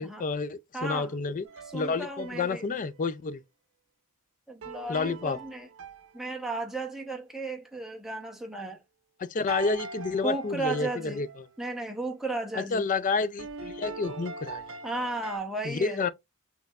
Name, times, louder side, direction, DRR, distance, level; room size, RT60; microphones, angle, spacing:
voice 1, 0.0-1.5 1.7-3.4 4.9-5.4 9.2-11.3 12.5-14.6 15.6-16.1, left 4 dB, 40° left, 0.4 m, -29 dB
voice 2, 0.7-1.2 1.7-2.7 4.5-5.7 6.1-8.8 10.2-11.2 11.6-12.9 14.8-16.1, right 2 dB, ahead, 0.9 m, -34 dB
sound 1, 1.5-3.0 4.6-6.8 9.5-11.5 13.4-15.4, right 4 dB, 70° right, 0.7 m, -42 dB
5.3 x 3.0 x 2.4 m
head